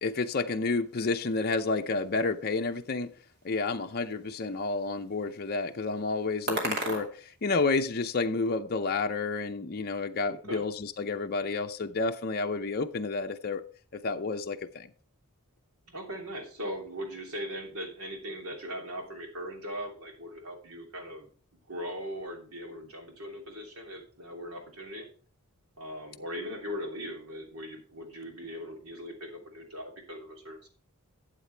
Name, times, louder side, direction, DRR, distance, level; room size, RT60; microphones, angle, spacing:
voice 1, 0.0-3.1 3.4-13.6 14.0-14.9, left 3 dB, 45° left, 0.6 m, -30 dB
sound 1, 0.8-8.1, right 1 dB, 50° right, 2.6 m, -41 dB
voice 2, 10.3-10.7 15.9-21.3 21.7-25.1 25.8-30.7, equal, 70° right, 3.0 m, -39 dB
12.5 x 8.3 x 3.4 m
head